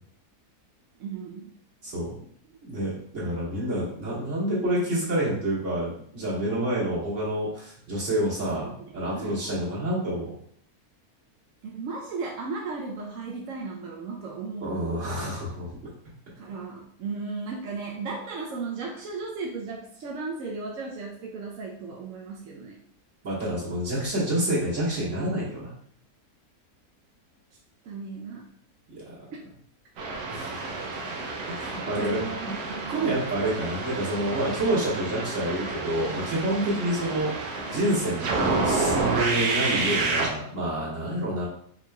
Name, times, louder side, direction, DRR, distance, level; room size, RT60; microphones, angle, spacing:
voice 1, 1.0-1.5 8.5-9.3 11.6-14.7 16.4-22.8 27.8-28.4 31.9-33.1 36.6-36.9, right 4 dB, 70° right, -1 dB, 0.8 m, -36 dB
voice 2, 1.8-2.2 2.6-10.3 14.6-15.8 23.2-25.7 29.0-29.1 30.3-30.8 31.5-37.3 37.7-41.5, right 1 dB, 50° right, -7 dB, 1.9 m, -28 dB
sound 1, 30.0-40.3, right 3 dB, 90° right, 1.3 m, -29 dB
4.7 x 3.8 x 2.2 m, 0.65 s
omnidirectional pair, 1.7 m